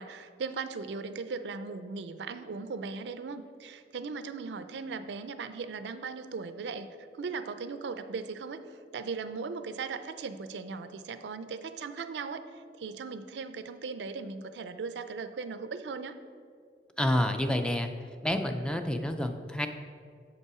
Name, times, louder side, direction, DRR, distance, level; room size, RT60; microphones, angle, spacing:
voice 1, 0.0-16.2, right 4 dB, 75° right, 11 dB, 0.4 m, -38 dB
voice 2, 17.0-17.9 18.2-19.7, left 1 dB, 5° left, 6 dB, 0.3 m, -28 dB
6.9 x 5.4 x 4.8 m, 2.2 s
head